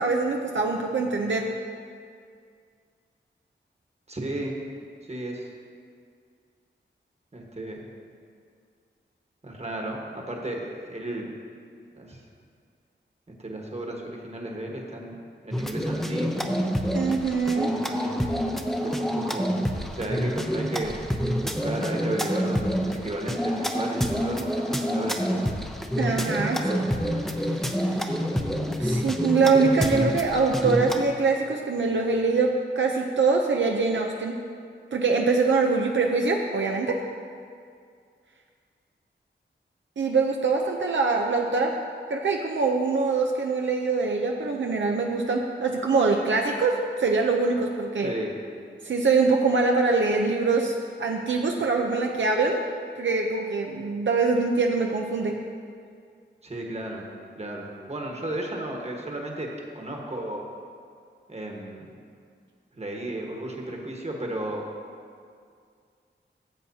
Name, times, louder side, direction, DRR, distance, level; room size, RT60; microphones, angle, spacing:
voice 1, 0.0-1.5 16.9-17.7 26.0-26.8 27.4-28.2 28.8-34.4 34.9-37.0 40.0-41.7 42.1-48.1 48.8-52.6 53.0-55.4, right 4 dB, 70° right, 1 dB, 0.6 m, -24 dB
voice 2, 4.1-4.6 5.1-5.5 7.3-7.8 9.4-11.3 11.9-12.2 13.4-15.2 15.4-16.6 17.6-18.3 18.8-19.5 19.9-21.0 21.4-25.5 26.3-27.0 48.0-48.3 56.4-57.1 57.4-59.5 59.7-60.4 61.3-61.9 62.8-64.7, right 1 dB, 35° right, 0 dB, 1.4 m, -34 dB
sound 1, 15.5-31.0, equal, ahead, 0.7 m, -27 dB
15.0 x 7.6 x 2.8 m, 2.2 s
wide cardioid pair, 90°, 20 cm